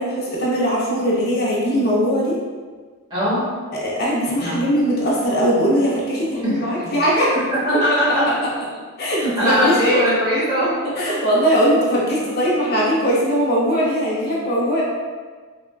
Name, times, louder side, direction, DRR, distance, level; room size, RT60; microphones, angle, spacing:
voice 1, 0.0-2.4 3.7-7.3 9.0-10.0 11.0-14.8, equal, 45° left, -5 dB, 0.5 m, -20 dB
voice 2, 3.1-3.5 4.4-4.6 6.4-6.9 7.3-8.5 9.4-11.2, equal, 20° right, -10 dB, 0.9 m, -21 dB
3.3 x 2.1 x 2.2 m, 1.5 s
head